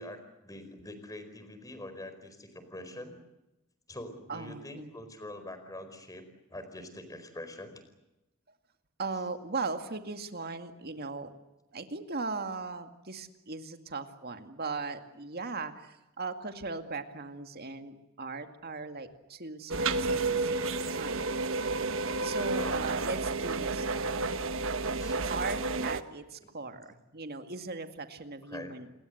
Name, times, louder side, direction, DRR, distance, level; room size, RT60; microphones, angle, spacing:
voice 1, 0.0-3.1 3.9-6.2 6.5-7.8 20.8-21.0 22.4-22.8 24.9-25.2 28.5-28.7, left 1 dB, 15° left, 9 dB, 4.6 m, -44 dB
voice 2, 4.3-4.9 9.0-11.3 11.7-21.2 22.2-24.3 25.3-28.9, right 3 dB, 50° right, 7 dB, 2.2 m, -38 dB
sound 1, 19.7-26.0, right 3 dB, 65° right, 1.3 m, -31 dB
29.0 x 21.5 x 7.9 m, 0.95 s
head